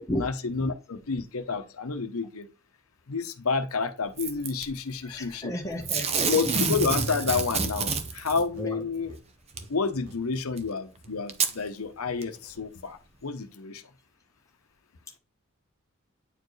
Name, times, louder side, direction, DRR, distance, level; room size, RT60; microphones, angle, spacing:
voice 1, 0.0-2.5 3.1-5.5 6.3-9.2 9.7-13.8, left 4 dB, 90° left, 0.8 m, -30 dB
Packing tape duct tape / Tearing, 4.2-4.6 5.8-8.4 9.6-9.7 10.6-10.7 11.3-11.5 12.2-12.3, right 5 dB, 30° right, 0.7 m, -27 dB
voice 2, 5.1-6.3 8.6-8.8, equal, 15° left, 1.1 m, -33 dB
sound 1, 5.8-8.7 9.0-9.2 9.5-9.7 10.0-10.2 10.5-11.2, right 1 dB, 85° right, 1.6 m, -48 dB
9.0 x 4.5 x 3.2 m
head